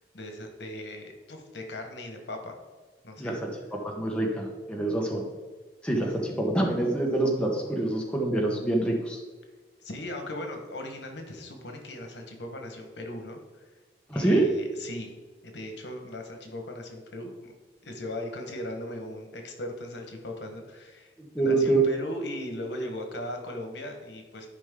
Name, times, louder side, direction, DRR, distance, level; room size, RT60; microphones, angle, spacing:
voice 1, 0.1-2.6 3.0-3.4 9.8-13.6 14.1-15.1 15.4-17.5 17.8-24.5, left 1 dB, 85° left, 3 dB, 1.5 m, -38 dB
voice 2, 3.2-3.5 3.8-5.2 5.8-9.2 14.1-14.5 21.3-21.8, right 2 dB, 5° left, -1 dB, 1.3 m, -26 dB
12.0 x 5.2 x 3.9 m, 1.3 s
head